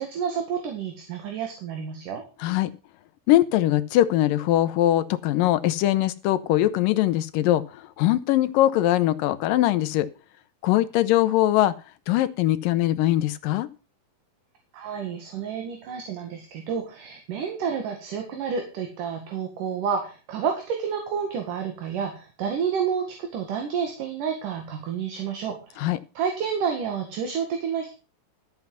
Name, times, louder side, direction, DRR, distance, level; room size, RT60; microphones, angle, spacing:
voice 1, 0.0-2.2 14.7-25.9 26.1-27.9, right 7 dB, 65° right, 4 dB, 3.3 m, -30 dB
voice 2, 2.4-2.7 3.3-10.1 10.6-11.7 12.1-13.7 25.8-26.0, left 14 dB, 80° left, 13 dB, 2.4 m, -21 dB
13.0 x 7.9 x 5.5 m, 0.33 s
omnidirectional pair, 4.1 m